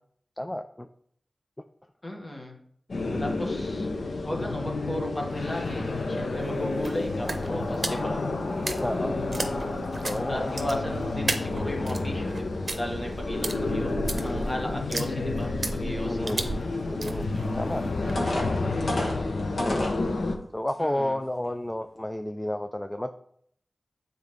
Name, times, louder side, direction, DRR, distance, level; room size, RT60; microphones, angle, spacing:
voice 1, 0.4-0.9 3.1-3.3 8.8-9.2 10.0-10.5 16.1-16.5 16.9-17.3 17.6-17.8 19.2-19.3 19.6-20.0 20.5-23.1, left 1 dB, 15° left, 8 dB, 0.3 m, -31 dB
voice 2, 2.0-2.6 3.2-8.2 10.3-13.9 14.2-16.3 18.1-18.5 20.8-21.2, left 1 dB, 35° left, 1 dB, 1.5 m, -36 dB
sound 1, 2.9-20.4, left 2 dB, 85° left, 0.8 m, -30 dB
sound 2, 5.3-18.3, right 2 dB, 50° right, 0.7 m, -37 dB
sound 3, 17.6-17.7 18.2-20.0 20.7-20.8 21.3-21.5, left 1 dB, 65° left, 1.6 m, -31 dB
8.9 x 4.0 x 3.5 m, 0.67 s
wide cardioid pair, 75°, 0 cm